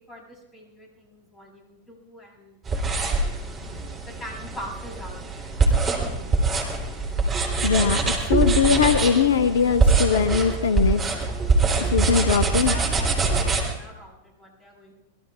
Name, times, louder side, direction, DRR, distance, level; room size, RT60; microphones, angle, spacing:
voice 1, 0.0-3.1 3.6-5.2 5.8-6.3 12.6-14.9, equal, 15° left, -1 dB, 8.0 m, -42 dB
sound 1, 2.7-13.6, right 3 dB, 25° right, 3.7 m, -23 dB
voice 2, 7.6-11.0 11.8-12.7, left 6 dB, 65° left, 11 dB, 0.6 m, -21 dB
25.0 x 21.5 x 2.5 m, 1.0 s
figure-of-eight pair, 90°, 0 cm